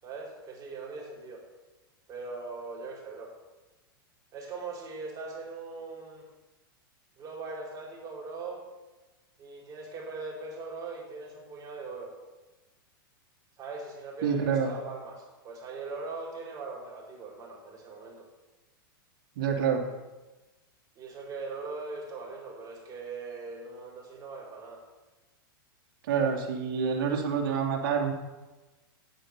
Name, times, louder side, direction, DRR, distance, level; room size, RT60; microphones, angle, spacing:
voice 1, 0.0-1.4 2.1-3.3 4.3-6.2 7.2-8.7 9.4-12.2 13.6-18.3 20.9-24.8, right 3 dB, 30° right, -2 dB, 4.6 m, -40 dB
voice 2, 14.2-14.7 19.4-19.8 26.0-28.1, right 6 dB, 65° right, 2 dB, 2.6 m, -27 dB
10.0 x 8.9 x 6.8 m, 1.1 s
hypercardioid pair, 120°, 12 cm